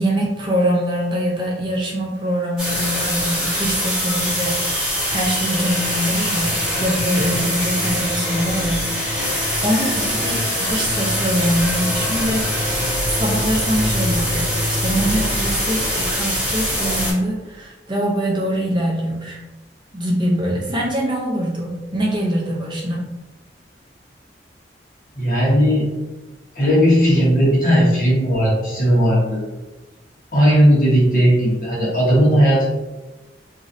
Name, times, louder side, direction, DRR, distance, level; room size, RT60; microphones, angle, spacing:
voice 1, 0.0-8.8 9.2-12.7 13.1-19.4 19.9-23.0, equal, 25° right, -3 dB, 0.5 m, -23 dB
sound 1, 2.6-17.1, equal, 5° right, 1.5 m, -22 dB
voice 2, 25.1-25.8 26.5-29.4 30.3-32.6, equal, 50° left, -7 dB, 1.3 m, -16 dB
3.0 x 2.6 x 2.6 m, 1.1 s
head